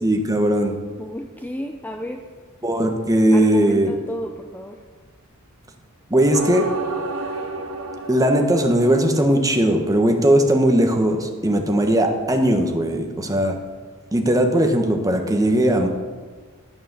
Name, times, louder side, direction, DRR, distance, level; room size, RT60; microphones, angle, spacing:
voice 1, 0.0-0.8 2.6-3.9 6.1-6.7 8.1-13.6 14.1-15.9, right 1 dB, 15° right, 3 dB, 1.2 m, -18 dB
voice 2, 1.0-2.2 3.3-4.8, equal, 10° left, 4 dB, 0.5 m, -32 dB
sound 1, 6.3-9.6, right 3 dB, 70° right, 1.2 m, -31 dB
11.5 x 8.8 x 6.8 m, 1.5 s
head